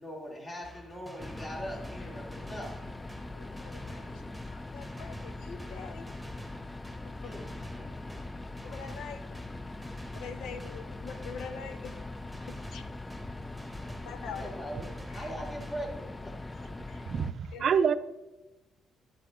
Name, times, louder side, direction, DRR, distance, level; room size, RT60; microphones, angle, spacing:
voice 1, 0.0-2.9 4.0-4.3 7.2-8.4 10.5-10.7 13.2-16.6, equal, 40° left, -2 dB, 3.1 m, -42 dB
sound 1, 0.6-15.9, equal, ahead, 1.6 m, -49 dB
sound 2, 1.2-17.3, left 2 dB, 15° left, 0.4 m, -42 dB
voice 2, 3.3-4.2 4.5-6.0 7.0-7.3 8.6-9.2 10.1-12.0 12.5-12.8 14.0-14.5 17.5-17.6, left 6 dB, 85° left, 10 dB, 0.8 m, -44 dB
voice 3, 17.1-17.9, right 7 dB, 60° right, 12 dB, 0.5 m, -26 dB
11.5 x 6.5 x 3.9 m, 1.1 s
cardioid pair, 90°, 0 cm